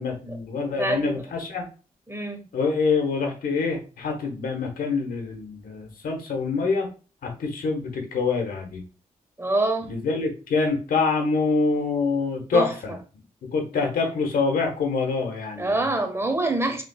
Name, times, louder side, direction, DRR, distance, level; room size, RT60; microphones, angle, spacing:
voice 1, 0.0-1.6 2.5-6.9 7.2-8.8 9.9-13.0 13.5-15.9, left 4 dB, 80° left, 1.1 m, -25 dB
voice 2, 0.7-1.3 2.1-2.4 9.4-9.9 12.5-12.7 15.6-16.8, right 2 dB, 20° right, 1.1 m, -25 dB
5.0 x 3.4 x 2.3 m
cardioid pair, 50°, 14 cm